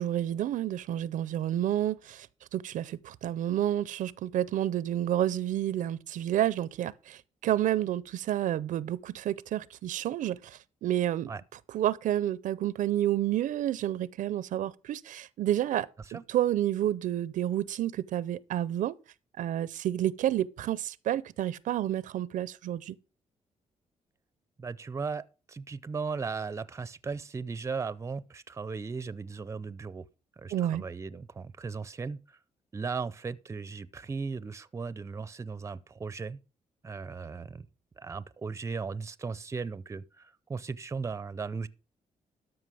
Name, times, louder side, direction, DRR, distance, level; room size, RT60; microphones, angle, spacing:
voice 1, 0.0-2.3 2.5-11.3 11.7-15.9 16.3-18.9 19.4-23.0 30.5-30.8, right 12 dB, 80° right, 0.5 m, -30 dB
voice 2, 24.6-30.1 30.4-32.4 32.7-36.4 36.8-37.7 38.0-41.7, right 5 dB, 20° right, 0.5 m, -37 dB
13.0 x 5.7 x 4.8 m
cardioid pair, 115°, 13 cm